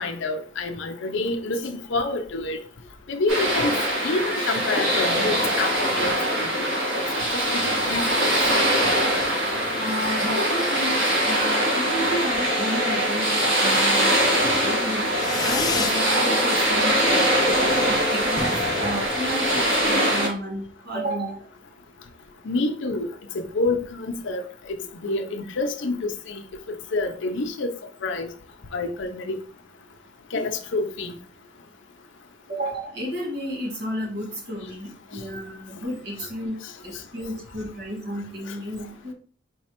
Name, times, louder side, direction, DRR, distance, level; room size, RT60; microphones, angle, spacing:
voice 1, 0.0-2.6 3.1-3.7 4.0-6.1 6.5-6.7 6.9-7.0 7.5-7.6 7.9-8.3 22.5-23.1 23.3-24.8 25.0-26.4 26.9-27.7 28.0-28.3 28.7-29.4 30.3-31.1, left 2 dB, 65° left, 0.6 m, -27 dB
sound 1, 3.3-20.3, equal, 80° right, 1.8 m, -22 dB
voice 2, 9.8-11.0 11.2-14.2 14.6-15.0 15.4-18.5 18.8-21.5 32.5-39.1, equal, 55° right, 1.7 m, -32 dB
Fireworks, 15.1-16.0 16.4-17.0 17.2-17.3 17.6-17.7 17.9-18.0 18.3-19.9, left 4 dB, 20° left, 0.4 m, -31 dB
4.6 x 3.1 x 2.9 m
head